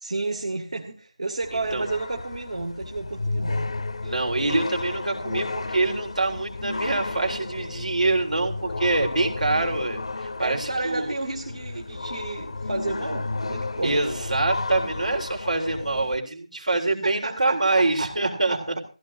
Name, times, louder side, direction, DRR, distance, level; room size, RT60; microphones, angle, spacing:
voice 1, 0.0-3.7 10.4-14.0 16.6-16.7 17.0-18.8, right 2 dB, 65° right, 2 dB, 2.0 m, -31 dB
sound 1, 1.4-16.2, left 3 dB, 55° left, 0.6 m, -33 dB
voice 2, 1.5-1.8 4.0-11.1 13.8-18.8, right 2 dB, 90° right, 2 dB, 3.7 m, -25 dB
18.0 x 15.5 x 2.6 m, 0.36 s
figure-of-eight pair, 170°, 4 cm